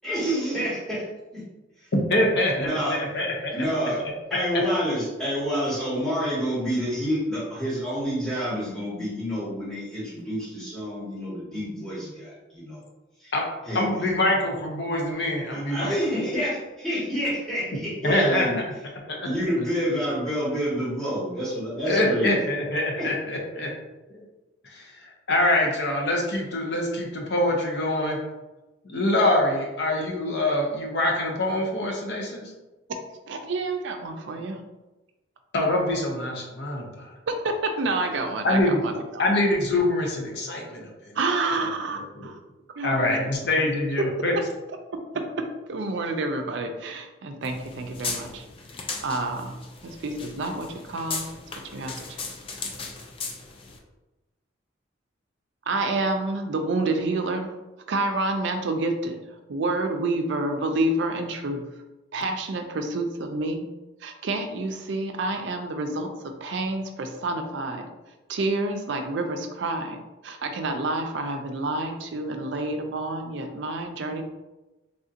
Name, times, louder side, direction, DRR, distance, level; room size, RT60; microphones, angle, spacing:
voice 1, 0.0-1.0 2.5-3.0 3.5-4.0 4.3-12.8 13.2-13.3 13.6-14.4 15.5-18.6 19.2-22.4 23.0-23.1, equal, 5° left, -10 dB, 1.2 m, -28 dB
voice 2, 1.9-3.5 4.5-4.6 13.3-13.4 13.7-16.0 18.0-18.5 19.1-19.3 21.9-23.7 24.1-24.2 24.7-28.2 28.8-32.5 35.5-37.1 38.4-38.8 39.2-41.2 42.2-42.3 42.8-44.3, left 1 dB, 60° left, 0 dB, 0.7 m, -24 dB
voice 3, 33.3-34.6 37.3-39.2 41.1-42.4 42.8-43.3 45.1-48.4 49.0-49.5 49.8-51.3 51.7-52.0 55.7-57.5 57.9-59.2 59.5-61.6 62.1-63.7 64.0-66.1 66.4-67.8 68.3-70.0 70.2-74.2, right 2 dB, 65° right, 5 dB, 0.4 m, -28 dB
sound 1, 47.4-53.8, left 4 dB, 30° left, 0.3 m, -37 dB
3.5 x 2.7 x 2.4 m, 1.1 s
head